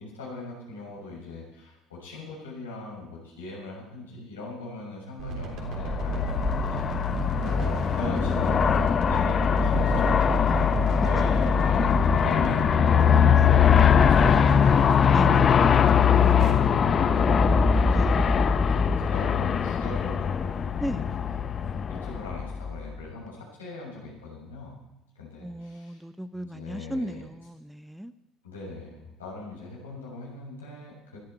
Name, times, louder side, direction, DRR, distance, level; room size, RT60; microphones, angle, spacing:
voice 1, 0.0-7.0 7.3-16.3 16.8-18.6 19.0-21.2 21.9-24.7 25.2-26.0 26.3-27.2 28.4-31.2, left 2 dB, 80° left, -4 dB, 7.2 m, -41 dB
sound 1, 5.2-16.5, right 2 dB, 55° right, 3.5 m, -34 dB
Aircraft, 5.6-22.9, left 7 dB, 40° left, 0.8 m, -21 dB
voice 2, 11.0-11.4 13.4-13.6 15.1-15.6 16.2-16.9 17.9-18.3 20.8-21.1 25.4-28.1, equal, 5° right, 12 dB, 0.8 m, -36 dB
20.5 x 13.5 x 4.6 m, 0.89 s
figure-of-eight pair, 60°, 0 cm